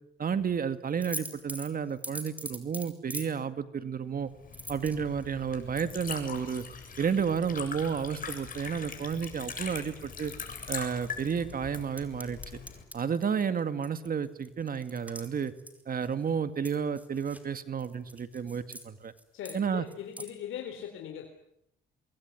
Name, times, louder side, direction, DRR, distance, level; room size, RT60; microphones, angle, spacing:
voice 1, 0.2-4.3 4.7-6.6 7.0-10.3 10.7-12.4 12.9-15.5 15.9-19.1 19.5-19.9, right 7 dB, 45° right, 11 dB, 2.1 m, -31 dB
sound 1, 1.0-3.3 4.5-5.3 7.2-7.6 8.1-8.2 9.2-9.8 10.2-11.1 11.5-16.3 16.6-17.5 17.8-18.8 19.2-19.6 19.9-20.3, right 1 dB, 5° right, 4.9 m, -43 dB
Liquid, 4.3-12.8, left 5 dB, 45° left, 7.4 m, -42 dB
voice 2, 19.3-21.3, left 9 dB, 85° left, 4 dB, 3.9 m, -40 dB
25.5 x 22.5 x 9.7 m, 0.81 s
cardioid pair, 90°, 20 cm